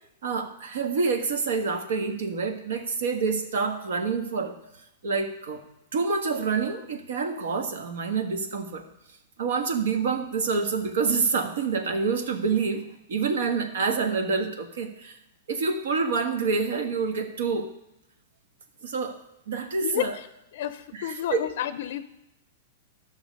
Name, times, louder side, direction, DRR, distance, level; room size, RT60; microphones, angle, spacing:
voice 1, 0.2-4.6 5.0-5.6 5.9-8.8 9.4-15.2 15.5-17.7 18.8-19.2 19.5-20.2 20.9-21.5, right 5 dB, 80° right, 6 dB, 1.4 m, -27 dB
voice 2, 19.8-20.3 20.5-22.0, left 11 dB, 55° left, 12 dB, 0.5 m, -30 dB
13.0 x 6.1 x 5.2 m, 0.85 s
supercardioid pair, 160°, 0 cm